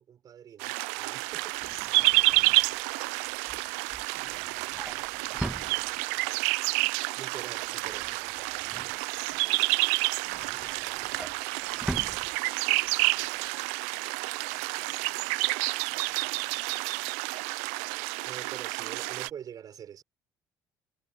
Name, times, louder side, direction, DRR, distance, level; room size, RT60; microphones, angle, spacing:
voice 1, 0.0-1.8 7.2-8.1 18.2-20.0, right 9 dB, 55° right, 6.5 m, -45 dB
sound 1, 0.6-19.3, right 26 dB, 85° right, 0.5 m, -29 dB
Drawer open or close, 1.3-6.4 6.7-7.1 7.3-9.5 9.9-12.9 13.3-13.5 13.7-13.8, right 1 dB, 5° right, 2.8 m, -42 dB
voice 2, 1.9-6.1 7.5-8.2 8.8-10.2 11.1-17.3, left 23 dB, 90° left, 6.8 m, -62 dB
supercardioid pair, 70°, 8 cm